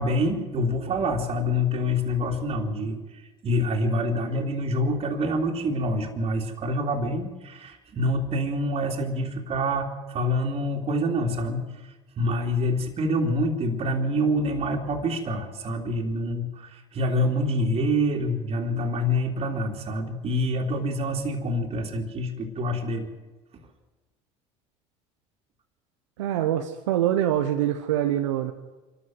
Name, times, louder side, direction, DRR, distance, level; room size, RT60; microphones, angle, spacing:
voice 1, 0.0-11.6 12.2-23.1, equal, 40° right, 1 dB, 3.3 m, -26 dB
voice 2, 26.2-28.5, right 11 dB, 85° right, 5 dB, 1.2 m, -24 dB
26.5 x 13.0 x 7.8 m, 1.2 s
hypercardioid pair, 85°, 15 cm